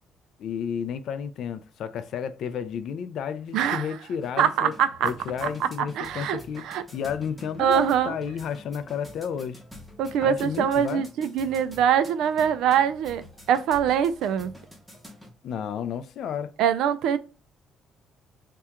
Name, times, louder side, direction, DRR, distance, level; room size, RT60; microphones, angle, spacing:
voice 1, 0.4-4.7 5.0-6.7 6.9-9.6 10.2-11.0 15.4-16.5, left 7 dB, 60° left, 0.3 m, -32 dB
voice 2, 3.5-3.9 4.4-5.1 5.4-5.5 6.0-6.8 7.6-8.2 10.0-13.2 13.5-14.5 16.6-17.2, right 8 dB, 75° right, 0.3 m, -23 dB
sound 1, 4.1-15.3, left 1 dB, ahead, 0.7 m, -47 dB
2.8 x 2.3 x 3.4 m
cardioid pair, 155°, 0 cm